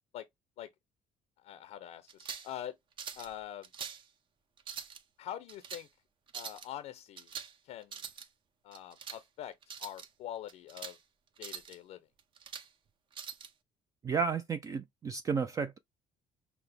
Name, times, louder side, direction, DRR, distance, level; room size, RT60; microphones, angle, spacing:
voice 1, 1.4-2.7 3.2-3.7 5.2-5.9 6.3-7.3 7.6-8.0 8.6-9.5 9.8-11.0 11.4-12.0, left 11 dB, 70° left, 0.5 m, -44 dB
sound 1, 2.1-2.5 3.0-3.3 3.6-4.0 4.6-5.0 5.5-5.8 6.3-6.7 7.2-7.6 7.8-8.3 8.7-9.2 9.6-10.1 10.5-11.0 11.4-11.8 12.2-12.7 13.1-13.5, right 7 dB, 45° right, 0.7 m, -44 dB
voice 2, 14.0-15.8, right 5 dB, 30° right, 0.3 m, -32 dB
5.8 x 2.0 x 3.3 m
cardioid pair, 110°, 12 cm